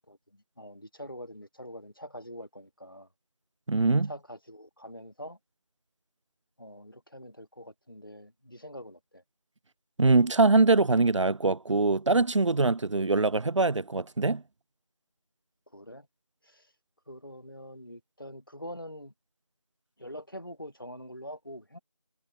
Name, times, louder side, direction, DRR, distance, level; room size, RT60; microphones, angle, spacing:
voice 1, 0.1-3.1 4.1-5.4 6.6-9.2 15.7-16.1 16.4-16.7 17.1-19.1 20.0-21.8, equal, 45° left, 1.9 m, -44 dB
voice 2, 3.7-4.1 10.0-14.4, right 3 dB, 75° right, 0.4 m, -23 dB
figure-of-eight pair, 180°, 16 cm